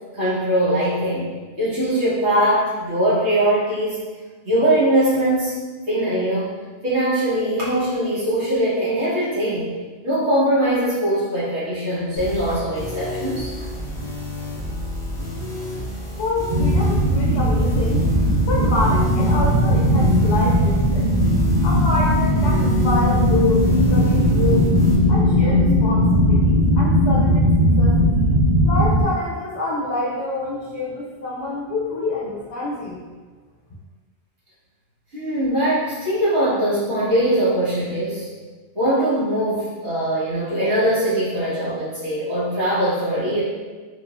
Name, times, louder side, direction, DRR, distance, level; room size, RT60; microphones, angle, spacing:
voice 1, 0.1-1.3 1.6-4.0 4.4-5.6 5.9-6.5 6.8-9.7 10.0-13.5 35.1-38.3 38.7-43.4, right 1 dB, 85° right, -10 dB, 1.6 m, -21 dB
sound 1, 12.2-25.0, left 1 dB, 5° left, 0.5 m, -31 dB
voice 2, 16.1-18.0 18.4-21.1 21.6-24.7 25.1-27.4 27.8-28.1 28.6-33.0, left 2 dB, 80° left, -4 dB, 0.9 m, -27 dB
sound 2, 16.5-29.0, equal, 55° right, 1.1 m, -18 dB
3.7 x 2.7 x 2.4 m, 1.4 s
omnidirectional pair, 1.1 m